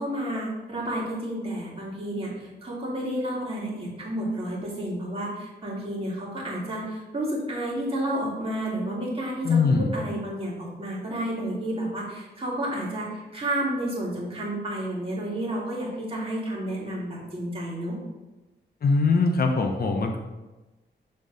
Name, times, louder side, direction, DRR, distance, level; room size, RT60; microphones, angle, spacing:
voice 1, 0.0-18.0, right 1 dB, 30° right, -5 dB, 2.2 m, -31 dB
voice 2, 9.4-9.9 18.8-20.2, left 4 dB, 55° left, 3 dB, 0.8 m, -22 dB
7.5 x 3.7 x 3.9 m, 1.1 s
wide cardioid pair, 105°, 18 cm